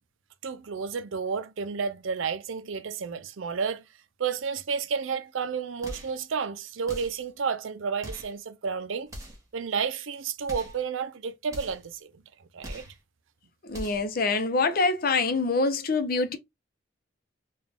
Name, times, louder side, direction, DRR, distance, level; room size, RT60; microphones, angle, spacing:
voice 1, 0.4-3.8 4.2-9.1 9.5-12.1 12.5-12.8, right 6 dB, 80° right, 0.5 m, -31 dB
sound 1, 5.8-6.2 6.9-7.3 8.0-8.4 9.1-9.5 10.4-10.8 11.5-11.9 12.6-13.0 13.7-14.1, equal, 15° right, 1.1 m, -41 dB
voice 2, 13.7-16.4, left 3 dB, 50° left, 0.7 m, -25 dB
3.8 x 2.4 x 3.4 m
head